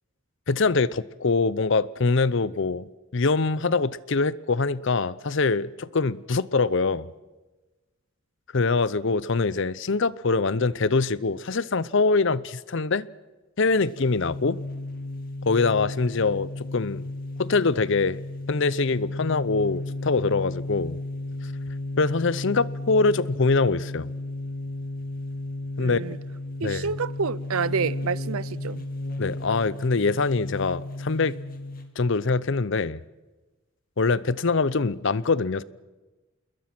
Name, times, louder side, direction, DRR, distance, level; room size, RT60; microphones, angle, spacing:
voice 1, 0.5-2.9 3.1-7.1 8.5-13.1 13.6-14.6 15.5-17.1 17.4-18.2 18.5-21.0 22.0-24.1 25.8-26.0 26.6-26.9 29.2-31.4 32.0-33.0 34.0-35.6, left 4 dB, 55° left, 0.6 m, -24 dB
sound 1, 13.7-31.9, left 2 dB, 40° left, 1.9 m, -34 dB
voice 2, 25.8-26.2 26.6-28.9, right 5 dB, 80° right, 0.6 m, -28 dB
28.5 x 21.5 x 6.1 m
head